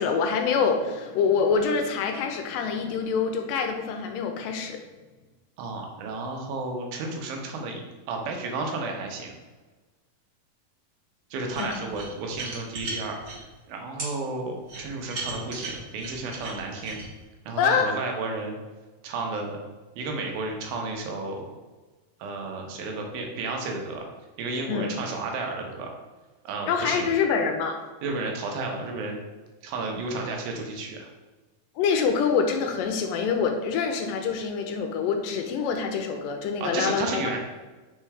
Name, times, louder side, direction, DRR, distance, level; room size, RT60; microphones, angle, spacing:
voice 1, 0.0-4.8 11.6-11.7 17.6-17.9 24.7-24.9 26.7-27.8 31.8-37.2, left 6 dB, 80° left, 5 dB, 2.2 m, -25 dB
voice 2, 5.6-9.3 11.3-17.0 17.5-18.6 19.0-19.6 20.0-21.5 22.2-24.1 24.4-25.9 26.4-27.1 28.0-29.2 29.6-31.1 36.6-37.4, right 3 dB, 80° right, 1 dB, 2.8 m, -32 dB
sound 1, 11.5-13.4 14.0-14.1 14.7-17.1, right 3 dB, 65° right, 0.9 m, -36 dB
5.5 x 4.4 x 4.8 m, 1.3 s
omnidirectional pair, 4.2 m